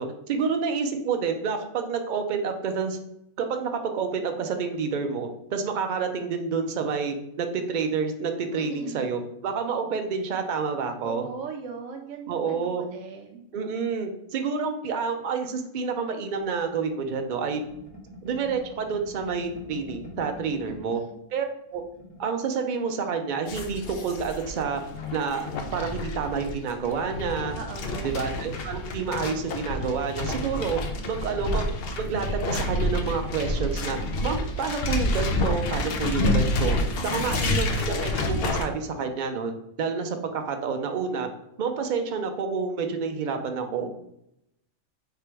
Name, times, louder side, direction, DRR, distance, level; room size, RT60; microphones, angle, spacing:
voice 1, 0.0-3.0 3.4-11.3 12.3-12.8 13.5-17.6 18.2-21.0 21.3-21.5 21.7-21.8 22.2-24.8 25.1-27.6 28.0-30.8 31.1-31.7 32.0-36.8 37.1-39.5 39.8-41.3 41.6-43.9, right 5 dB, 60° right, 5 dB, 0.5 m, -29 dB
voice 2, 8.5-9.1 11.0-13.4 20.7-21.2 27.5-28.1 31.0-31.2 37.0-37.5, right 5 dB, 75° right, 2 dB, 0.9 m, -40 dB
sound 1, 16.4-21.0 21.3-21.4 21.7-22.3, equal, 5° left, 1.1 m, -45 dB
sound 2, 23.5-38.7, left 1 dB, 60° left, 0.7 m, -28 dB
3.4 x 2.9 x 4.5 m, 0.81 s
omnidirectional pair, 1.4 m